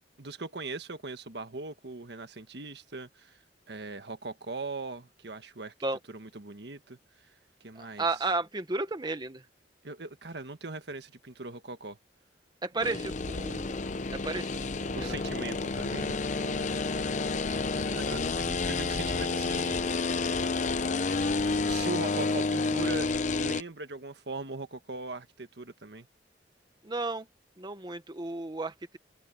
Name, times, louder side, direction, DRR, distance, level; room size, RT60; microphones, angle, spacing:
voice 1, 0.2-3.4 3.7-5.7 6.1-7.3 7.6-8.0 9.8-12.0 12.7-13.0 14.9-17.2 17.8-19.9 21.5-26.1, right 3 dB, 70° right, 1.5 m, -40 dB
voice 2, 7.7-9.4 12.6-13.8 14.1-15.2 26.8-27.3 27.6-29.0, right 3 dB, 25° right, 1.0 m, -33 dB
sound 1, 12.8-23.6, left 3 dB, 45° left, 0.7 m, -30 dB
head